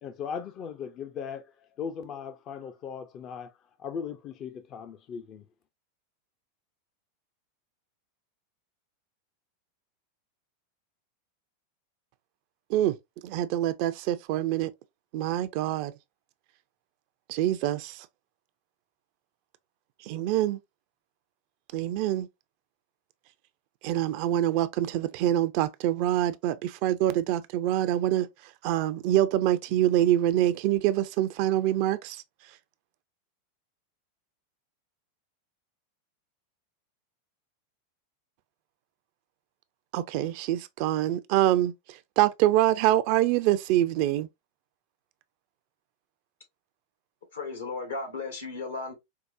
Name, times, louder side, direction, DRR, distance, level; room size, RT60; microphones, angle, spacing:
voice 1, 0.0-1.4 1.8-3.5 3.8-5.5, left 7 dB, 40° left, 0.4 m, -38 dB
voice 2, 13.2-14.7 15.1-15.9 17.3-18.1 20.1-20.6 21.7-22.3 23.8-28.3 28.6-32.2 39.9-41.7 42.2-44.3, right 13 dB, 55° right, 0.4 m, -25 dB
voice 3, 47.3-48.9, left 3 dB, 80° left, 1.5 m, -35 dB
4.6 x 2.1 x 2.5 m
hypercardioid pair, 90°, 0 cm